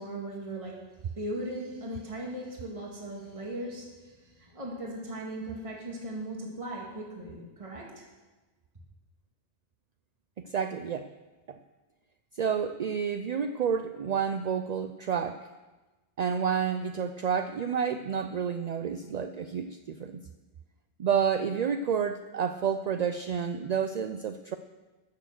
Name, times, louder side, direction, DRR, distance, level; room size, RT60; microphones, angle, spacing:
voice 1, 0.0-8.1, right 1 dB, 30° right, -2 dB, 1.9 m, -38 dB
voice 2, 10.4-11.1 11.5-11.6 12.3-15.5 16.2-20.2 21.0-24.6, right 7 dB, 60° right, 9 dB, 0.4 m, -30 dB
14.0 x 6.7 x 6.5 m, 1.2 s
omnidirectional pair, 1.1 m